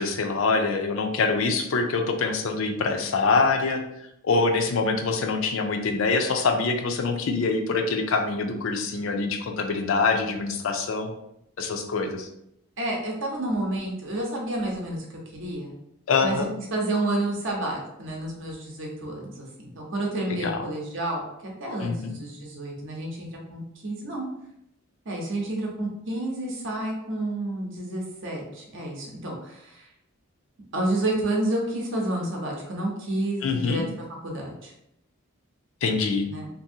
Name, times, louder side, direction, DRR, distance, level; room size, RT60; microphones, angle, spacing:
voice 1, 0.0-3.8 4.2-11.1 11.6-12.3 16.1-16.5 20.4-20.6 21.8-22.2 33.4-33.8 35.8-36.3, left 4 dB, 65° left, 5 dB, 0.4 m, -25 dB
voice 2, 12.8-15.0 15.3-15.7 16.2-24.2 25.1-29.9 30.7-33.8 34.2-34.7 36.3-36.5, right 1 dB, 60° right, -1 dB, 0.7 m, -30 dB
2.7 x 2.6 x 2.7 m, 0.79 s
head